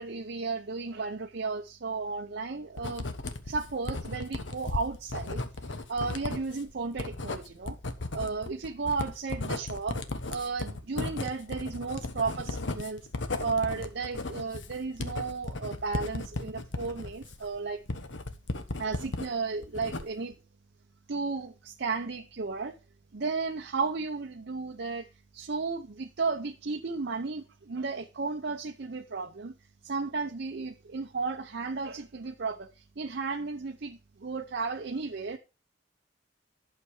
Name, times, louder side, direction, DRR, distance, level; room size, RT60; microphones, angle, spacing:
voice 1, 0.0-3.1 3.4-5.4 5.9-7.8 8.1-10.0 10.3-13.1 13.4-17.8 18.8-20.4 21.1-22.8 23.1-25.1 25.3-29.5 29.8-35.4, right 4 dB, 60° right, 0.7 m, -34 dB
Writing, 2.8-19.3 19.6-20.3, left 2 dB, 70° left, 1.2 m, -36 dB
11.5 x 6.7 x 4.8 m
head